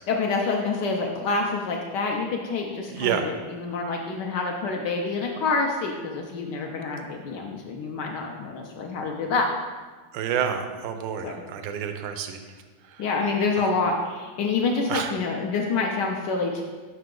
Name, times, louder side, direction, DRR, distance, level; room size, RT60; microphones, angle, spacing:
voice 1, 0.1-9.5 11.2-11.4 13.0-16.6, left 4 dB, 70° left, 1 dB, 1.1 m, -27 dB
voice 2, 2.9-3.3 10.1-12.4 14.9-15.1, right 8 dB, 75° right, 7 dB, 1.3 m, -28 dB
5.7 x 5.3 x 3.7 m, 1.4 s
omnidirectional pair, 2.1 m